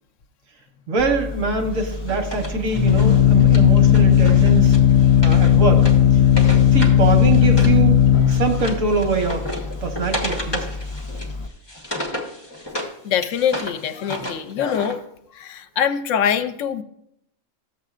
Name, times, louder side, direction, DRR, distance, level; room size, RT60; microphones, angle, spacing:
voice 1, 0.9-4.8 5.2-5.9 6.7-8.0 8.3-9.5 9.8-10.7, right 4 dB, 85° right, 4 dB, 1.5 m, -23 dB
Organ, 1.0-11.5, left 9 dB, 45° left, 0.4 m, -16 dB
Wood, 1.7-7.8 8.1-12.9 13.2-14.9, left 1 dB, 20° left, 1.2 m, -33 dB
voice 2, 13.0-15.0 15.3-16.8, left 8 dB, 80° left, 11 dB, 0.9 m, -23 dB
12.5 x 7.5 x 2.4 m, 0.76 s
omnidirectional pair, 1.3 m